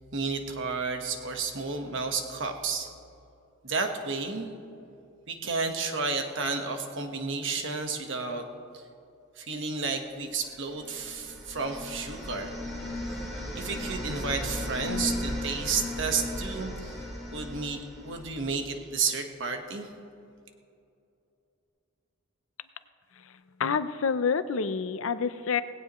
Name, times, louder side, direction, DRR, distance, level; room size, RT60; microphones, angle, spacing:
voice 1, 0.1-2.9 3.6-4.5 5.3-8.4 8.7-8.8 9.4-12.5 13.5-17.0 17.3-19.9, right 4 dB, 60° right, 4 dB, 1.4 m, -32 dB
sound 1, 10.6-18.6, left 1 dB, ahead, 3.8 m, -36 dB
voice 2, 23.6-25.6, left 6 dB, 70° left, 13 dB, 0.6 m, -27 dB
18.0 x 16.5 x 3.1 m, 2.6 s
head